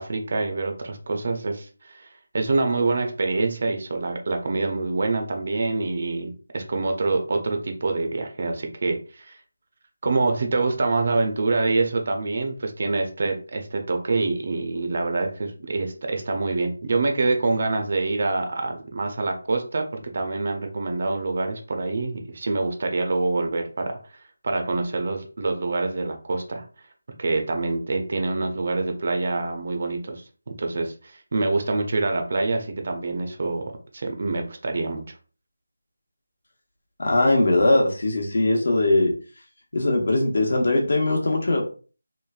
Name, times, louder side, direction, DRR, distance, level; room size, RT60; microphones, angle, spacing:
voice 1, 0.0-2.1 2.3-9.3 10.0-24.0 24.4-26.6 27.2-35.0, right 3 dB, 45° right, 5 dB, 0.5 m, -26 dB
voice 2, 37.0-39.1 39.7-41.6, left 2 dB, 65° left, 0 dB, 0.9 m, -20 dB
3.1 x 2.1 x 2.3 m, 0.37 s
figure-of-eight pair, 170°, 0 cm